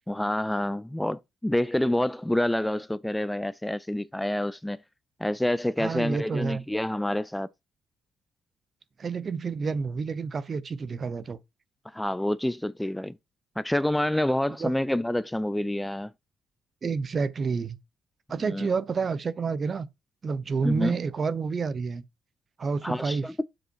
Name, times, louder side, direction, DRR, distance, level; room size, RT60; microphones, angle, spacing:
voice 1, 0.1-4.8 5.2-7.5 11.9-13.2 13.6-16.1 18.4-18.7 20.6-21.0 22.8-23.3, left 1 dB, 5° left, 0.3 m, -27 dB
voice 2, 5.8-6.6 9.0-11.4 14.6-14.7 16.8-17.8 18.3-19.9 20.2-22.0 22.6-23.2, right 5 dB, 40° right, 0.8 m, -29 dB
7.4 x 5.3 x 4.6 m
cardioid pair, 90°, 0 cm